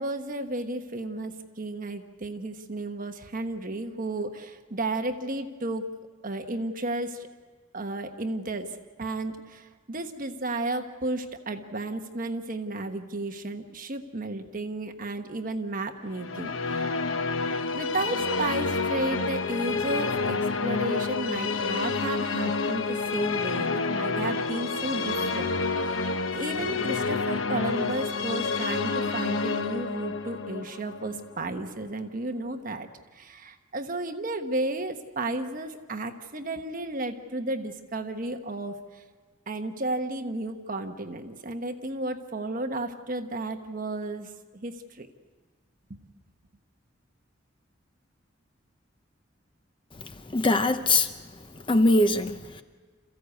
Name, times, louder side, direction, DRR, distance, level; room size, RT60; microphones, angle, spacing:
voice 1, 0.0-5.8 6.2-7.3 7.7-16.9 17.7-39.0 39.5-45.1 45.9-46.0, right 2 dB, 45° right, 6 dB, 1.2 m, -33 dB
sound 1, 16.1-32.2, left 4 dB, 85° left, 0.9 m, -29 dB
voice 2, 50.3-51.1 51.7-52.6, left 2 dB, 25° left, 9 dB, 0.7 m, -22 dB
27.5 x 15.0 x 8.4 m, 1.5 s
head